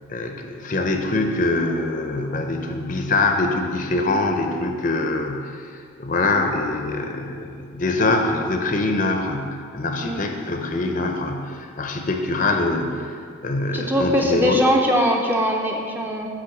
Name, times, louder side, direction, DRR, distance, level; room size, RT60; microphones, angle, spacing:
voice 1, 0.1-5.5 6.0-13.2 13.4-14.6, left 2 dB, 40° left, 4 dB, 0.6 m, -24 dB
voice 2, 13.7-16.3, equal, 10° right, 1 dB, 0.5 m, -21 dB
10.0 x 3.5 x 7.2 m, 2.2 s
head